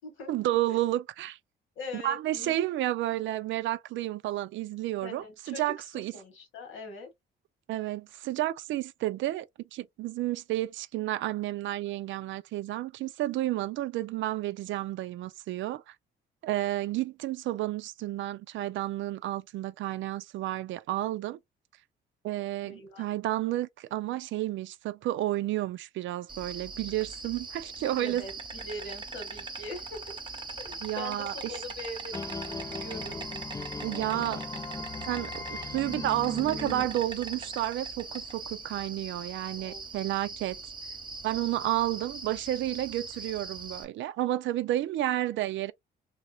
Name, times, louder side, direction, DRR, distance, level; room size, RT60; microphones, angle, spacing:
voice 1, 0.3-1.4 1.9-6.1 7.7-15.9 16.4-21.4 22.2-28.3 30.8-31.3 33.8-34.4 35.1-40.6 41.2-45.7, right 14 dB, 75° right, 0.4 m, -31 dB
voice 2, 1.7-2.6 5.0-5.6 5.9-7.1 22.6-23.1 28.0-30.1 30.6-33.2 39.6-39.8, left 2 dB, 80° left, 1.6 m, -42 dB
Insect, 26.3-43.8, right 4 dB, 25° right, 0.9 m, -41 dB
sound 1, 32.1-37.7, left 4 dB, 15° left, 0.4 m, -39 dB
3.0 x 2.8 x 2.7 m
cardioid pair, 90°, 20 cm